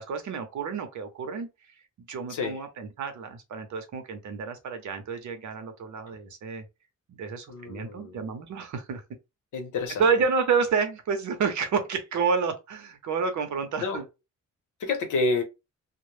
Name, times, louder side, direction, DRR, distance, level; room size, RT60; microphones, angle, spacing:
voice 1, 0.0-1.5 2.1-6.6 7.1-9.0 10.0-14.1, right 5 dB, 65° right, 0.7 m, -29 dB
voice 2, 7.5-8.2 9.5-10.0 13.8-14.0 14.8-15.4, left 3 dB, 80° left, 0.8 m, -28 dB
2.1 x 2.0 x 3.1 m
wide cardioid pair, 165°, 31 cm